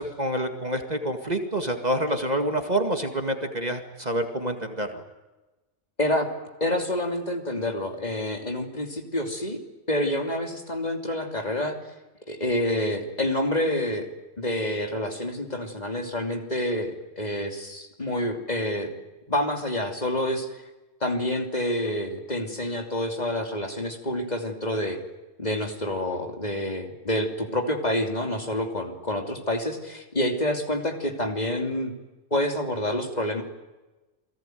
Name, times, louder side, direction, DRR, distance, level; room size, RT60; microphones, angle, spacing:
voice 1, 0.0-5.0, right 1 dB, 30° right, 6 dB, 2.2 m, -27 dB
voice 2, 6.6-9.6 9.9-11.7 12.3-14.1 14.4-18.9 19.3-20.6 21.0-25.0 25.4-31.9 32.3-33.4, left 1 dB, 30° left, 4 dB, 3.1 m, -28 dB
29.0 x 19.0 x 9.3 m, 1.1 s
omnidirectional pair, 1.4 m